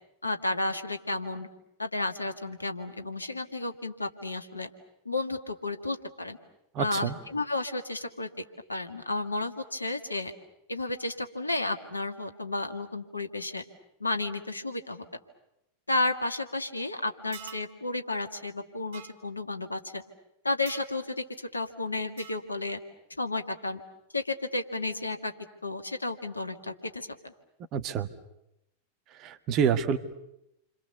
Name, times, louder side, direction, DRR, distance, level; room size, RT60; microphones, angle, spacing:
voice 1, 0.2-1.5 1.8-4.7 5.1-6.4 6.8-8.3 8.7-10.3 10.7-13.6 14.0-15.0 15.9-20.0 20.4-22.8 23.2-23.8 24.1-25.3 25.6-27.3, left 2 dB, 80° left, 7 dB, 2.0 m, -32 dB
voice 2, 6.7-7.2 27.7-28.1 29.1-30.0, right 7 dB, 35° right, 10 dB, 1.8 m, -27 dB
sound 1, 17.3-17.7 18.9-19.1 20.7-20.9 22.2-22.5, right 9 dB, 55° right, 1.7 m, -45 dB
29.0 x 26.0 x 7.0 m, 0.84 s
figure-of-eight pair, 90°, 0 cm